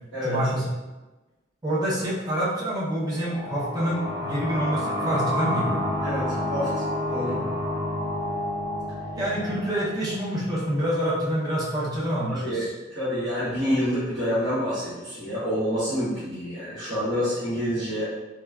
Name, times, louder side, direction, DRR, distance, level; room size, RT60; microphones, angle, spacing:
voice 1, 0.2-0.6 1.6-5.8 9.2-12.7, equal, 20° right, -6 dB, 0.6 m, -27 dB
sound 1, 3.1-10.5, left 1 dB, 45° right, 1.0 m, -29 dB
voice 2, 6.0-6.7 7.1-7.4 12.3-18.1, equal, 70° right, -16 dB, 1.4 m, -27 dB
4.3 x 2.3 x 2.3 m, 1.1 s
head